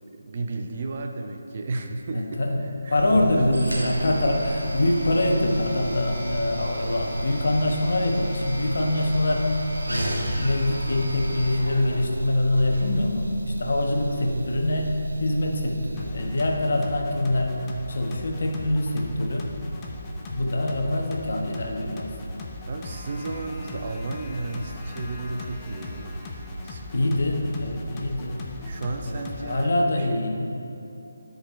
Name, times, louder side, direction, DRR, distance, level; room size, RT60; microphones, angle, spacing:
voice 1, 0.1-3.6 14.2-14.5 22.7-26.2 26.6-27.5 28.6-30.8, right 2 dB, 45° right, 4 dB, 0.6 m, -34 dB
voice 2, 2.1-2.6 2.9-19.5 20.3-22.1 26.9-28.5 29.1-30.5, left 1 dB, 60° left, 2 dB, 1.0 m, -25 dB
sound 1, 2.9-16.4, right 1 dB, 85° right, 1.7 m, -32 dB
sound 2, 16.0-29.7, left 1 dB, 20° left, 0.7 m, -37 dB
12.0 x 5.2 x 3.1 m, 2.8 s
figure-of-eight pair, 155°, 0 cm